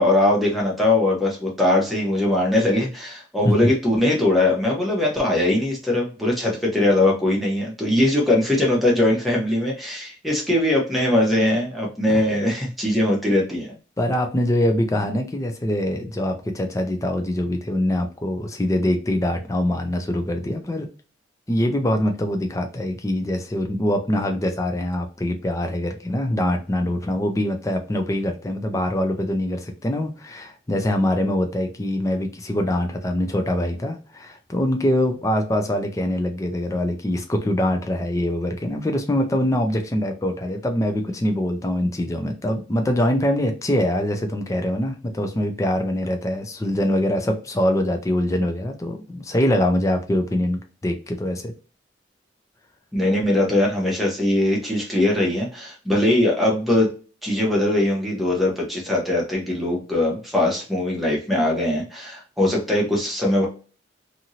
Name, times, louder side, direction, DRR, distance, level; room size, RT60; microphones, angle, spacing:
voice 1, 0.0-13.8 52.9-56.9 57.2-63.5, left 1 dB, ahead, -3 dB, 0.9 m, -21 dB
voice 2, 14.0-20.9 21.5-51.5, left 1 dB, 15° left, 4 dB, 0.4 m, -23 dB
2.8 x 2.6 x 2.7 m, 0.37 s
head